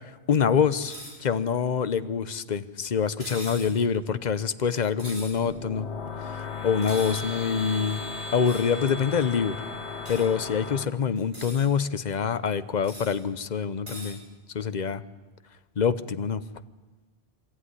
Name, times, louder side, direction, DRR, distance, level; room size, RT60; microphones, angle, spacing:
voice 1, 0.3-0.9 1.2-5.9 6.3-8.0 8.3-9.6 10.1-14.2 14.5-15.0 15.8-16.4, left 6 dB, 45° left, 13 dB, 0.9 m, -25 dB
sound 1, 0.8-1.2 3.2-3.7 5.0-5.4 6.8-7.2 8.4-8.7 10.0-10.2 11.2-11.6 12.8-13.1 13.9-14.1, equal, 85° right, 7.9 m, -41 dB
sound 2, 5.2-10.8, left 4 dB, 75° left, 2.1 m, -36 dB
24.0 x 14.5 x 9.8 m, 1.2 s
omnidirectional pair, 1.2 m